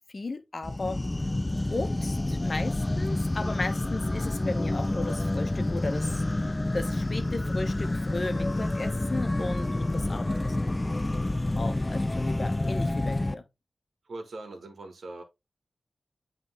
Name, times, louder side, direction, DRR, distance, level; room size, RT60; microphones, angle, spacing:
voice 1, 0.1-1.0 1.7-6.2 6.7-10.8 11.6-13.4, left 2 dB, 45° left, 1.0 m, -35 dB
sound 1, 0.6-13.3, left 2 dB, 25° left, 0.3 m, -28 dB
voice 2, 14.0-15.2, right 2 dB, 85° right, 1.6 m, -41 dB
7.9 x 3.5 x 3.5 m
wide cardioid pair, 70°, 0 cm